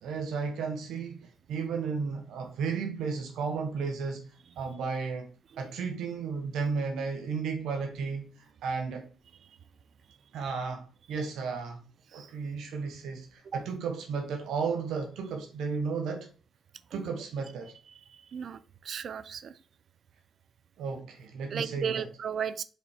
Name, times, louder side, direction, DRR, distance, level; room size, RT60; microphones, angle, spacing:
voice 1, 0.0-9.1 10.3-11.8 12.1-16.3 16.9-17.7 20.8-22.1, right 5 dB, 80° right, 1.1 m, -34 dB
voice 2, 18.1-19.6 21.5-22.6, right 7 dB, 55° right, 0.5 m, -35 dB
5.1 x 4.2 x 4.9 m
cardioid pair, 90°, 0 cm